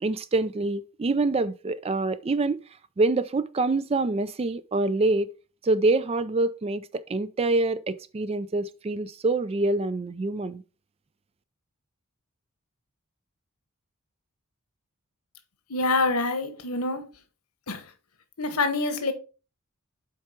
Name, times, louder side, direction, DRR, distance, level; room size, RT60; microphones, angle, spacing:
voice 1, 0.0-2.6 3.0-5.3 5.6-10.6, right 2 dB, 25° right, 0.3 m, -26 dB
voice 2, 15.7-17.0 17.7-17.8 18.4-19.1, left 3 dB, 85° left, 1.2 m, -26 dB
7.4 x 4.7 x 4.4 m
head